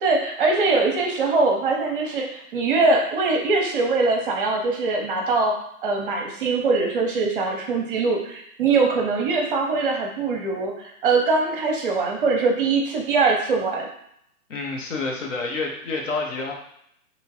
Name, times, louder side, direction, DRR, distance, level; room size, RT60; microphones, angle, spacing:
voice 1, 0.0-5.5 5.8-13.9, right 3 dB, 35° right, 1 dB, 0.7 m, -22 dB
voice 2, 14.5-16.5, left 3 dB, 55° left, 0 dB, 1.0 m, -28 dB
3.6 x 3.0 x 2.9 m, 0.73 s
hypercardioid pair, 135°, 45 cm